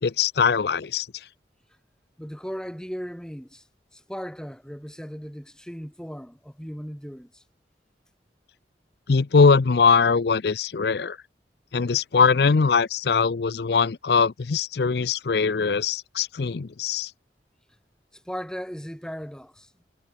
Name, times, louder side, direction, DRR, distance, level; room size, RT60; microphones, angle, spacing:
voice 1, 0.0-1.1 9.1-11.2 11.7-17.1, left 5 dB, 65° left, 0.5 m, -21 dB
voice 2, 2.2-3.6 3.9-7.4 18.1-19.7, equal, 5° left, 3.0 m, -37 dB
head